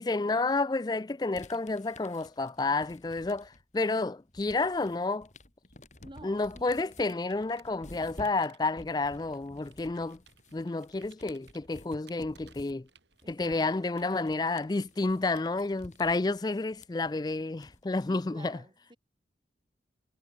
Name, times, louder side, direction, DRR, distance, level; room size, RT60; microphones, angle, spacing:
voice 1, 0.0-5.3 6.2-10.2 10.5-12.9 13.3-18.6, left 3 dB, 20° left, 0.4 m, -30 dB
sound 1, 1.3-3.8 4.1-18.0, left 1 dB, 40° left, 4.0 m, -53 dB
voice 2, 6.0-7.3 13.2-14.2 18.1-19.0, right 1 dB, 25° right, 4.3 m, -52 dB
Computer keyboard, 6.2-16.5, right 7 dB, 85° right, 5.4 m, -63 dB
head